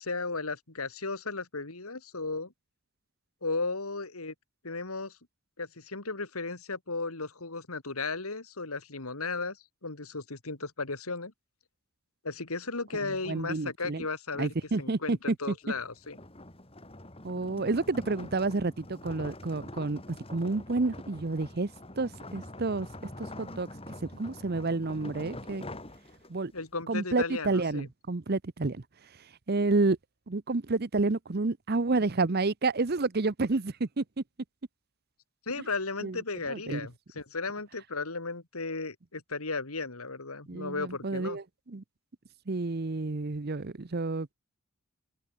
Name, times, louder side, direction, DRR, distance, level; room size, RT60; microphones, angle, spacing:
voice 1, 0.0-2.5 3.4-4.3 4.6-5.2 5.6-9.6 9.8-11.3 12.2-16.2 26.5-27.9 35.5-41.4, left 3 dB, 85° left, 2.9 m, -35 dB
voice 2, 13.0-14.0 14.4-15.5 17.2-21.7 22.0-23.7 24.0-25.6 26.3-26.5 26.9-28.8 29.5-30.0 30.3-34.2 36.0-36.2 36.5-36.9 40.5-41.8 42.5-44.3, right 3 dB, 45° right, 0.8 m, -30 dB
sound 1, 15.6-26.6, left 1 dB, 25° left, 4.2 m, -45 dB
head